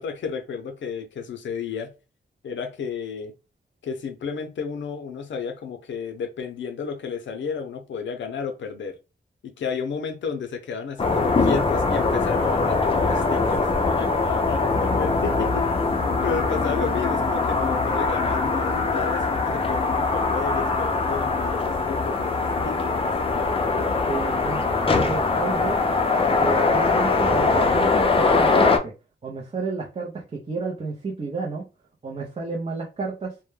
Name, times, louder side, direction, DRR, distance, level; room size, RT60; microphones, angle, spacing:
voice 1, 0.0-1.9 2.4-3.3 3.8-9.0 9.4-15.7 16.0-23.1 23.4-23.5, left 6 dB, 85° left, 0.5 m, -32 dB
sound 1, 11.0-28.8, left 3 dB, 30° left, 0.4 m, -22 dB
voice 2, 24.1-25.8 26.4-28.9 29.2-31.7 32.0-33.4, right 4 dB, 35° right, 0.5 m, -31 dB
2.1 x 2.1 x 3.1 m
wide cardioid pair, 100°, 19 cm